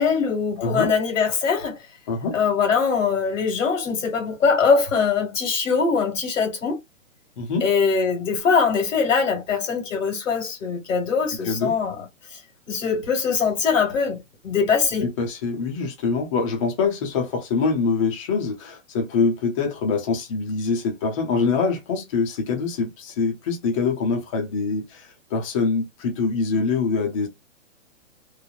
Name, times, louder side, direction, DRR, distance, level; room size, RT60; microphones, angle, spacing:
voice 1, 0.0-1.8 2.3-6.8 7.6-12.0 12.7-15.1, left 5 dB, 75° left, 1.6 m, -22 dB
voice 2, 0.6-0.9 2.1-2.4 7.4-7.7 11.4-11.7 15.0-27.3, left 4 dB, 25° left, 0.7 m, -24 dB
3.1 x 2.0 x 2.4 m
hypercardioid pair, 165°, 39 cm